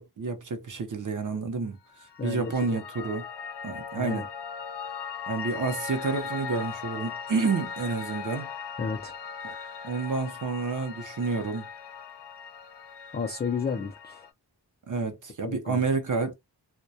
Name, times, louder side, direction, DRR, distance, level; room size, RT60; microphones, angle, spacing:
voice 1, 0.0-1.8 2.2-3.2 3.6-4.2 5.3-8.5 9.4-9.6 9.8-11.6 14.9-16.3, right 4 dB, 50° right, 0.6 m, -29 dB
Piano, 1.9-14.3, left 6 dB, 90° left, 0.6 m, -39 dB
voice 2, 2.2-2.8 3.9-4.2 8.8-9.1 13.1-14.3 15.4-15.8, left 5 dB, 25° left, 0.4 m, -32 dB
2.2 x 2.1 x 2.6 m
wide cardioid pair, 90°, 40 cm